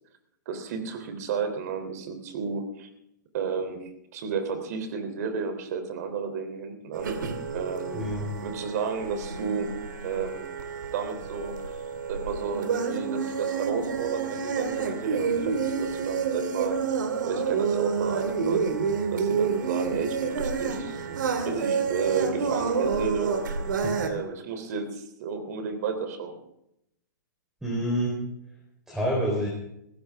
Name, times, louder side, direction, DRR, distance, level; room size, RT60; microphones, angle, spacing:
voice 1, 0.4-2.9 3.3-7.2 7.5-8.1 8.4-9.7 10.0-10.5 10.9-11.8 12.1-16.8 17.2-18.8 19.1-21.0 21.4-26.4, right 5 dB, 60° right, 7 dB, 3.3 m, -32 dB
sound 1, 6.9-24.1, right 5 dB, 90° right, 2.6 m, -29 dB
voice 2, 7.9-8.4 23.8-23.9 27.6-28.1 28.9-29.5, equal, 5° right, -3 dB, 4.0 m, -27 dB
19.0 x 15.5 x 3.6 m, 0.79 s
hypercardioid pair, 150°, 10 cm